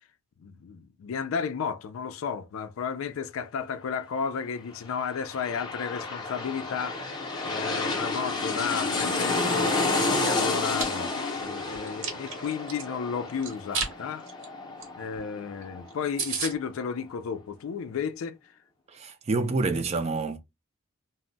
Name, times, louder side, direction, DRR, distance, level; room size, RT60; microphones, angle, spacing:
voice 1, 0.4-7.0 7.4-14.2 15.0-18.4, left 6 dB, 75° left, 0.4 m, -33 dB
sound 1, 4.9-16.3 16.6-16.7, left 2 dB, 20° left, 0.6 m, -30 dB
Chewing mastication, 10.5-10.8 11.4-12.8 13.4-13.9 14.3-14.4 14.8-14.9 15.2-15.3 15.6-15.7 15.9-16.0 16.2-16.5, right 5 dB, 65° right, 1.0 m, -31 dB
voice 2, 18.9-20.4, right 3 dB, 30° right, 0.4 m, -27 dB
2.2 x 2.0 x 3.7 m
head